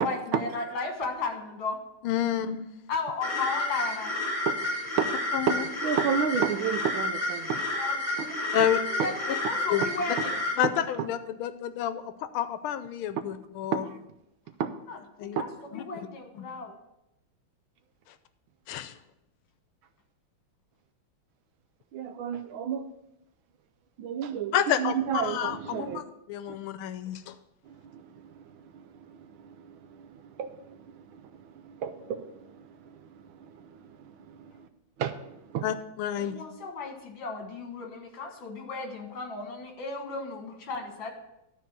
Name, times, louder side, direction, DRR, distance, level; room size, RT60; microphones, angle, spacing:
voice 1, 0.0-1.8 2.9-4.1 7.7-10.3 14.9-15.5 15.7-16.7 36.2-41.1, left 4 dB, 65° left, 2.2 m, -35 dB
voice 2, 2.0-2.7 5.3-5.6 8.5-8.8 9.7-9.8 10.6-13.8 15.2-15.4 15.7-16.1 16.3-16.5 18.7-18.9 24.5-26.0 26.3-27.3 35.6-36.4, left 10 dB, 85° left, 1.5 m, -29 dB
sound 1, 3.2-10.5, left 1 dB, 5° left, 2.7 m, -30 dB
voice 3, 5.4-7.6 8.2-8.3 9.0-9.1 10.2-10.3 10.6-10.7 11.0-11.1 13.7-14.0 14.6-14.7 21.9-22.9 24.0-26.0 26.5-26.6 27.6-34.7 35.0-35.7, right 8 dB, 80° right, 1.4 m, -32 dB
12.5 x 4.3 x 6.0 m
omnidirectional pair, 2.3 m